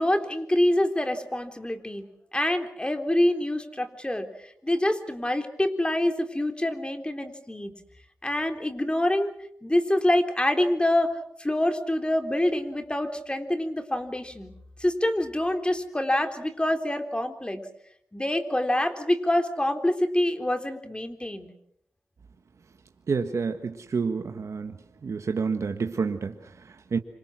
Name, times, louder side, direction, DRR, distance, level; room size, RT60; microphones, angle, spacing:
voice 1, 0.0-2.0 2.3-4.3 4.6-7.7 8.2-9.3 9.6-11.1 11.4-14.5 14.8-17.6 18.1-21.5, left 1 dB, 20° left, 7 dB, 3.8 m, -26 dB
voice 2, 23.1-24.8 25.0-27.0, right 5 dB, 75° right, 6 dB, 1.5 m, -29 dB
27.0 x 26.0 x 6.3 m, 0.72 s
cardioid pair, 45°, 5 cm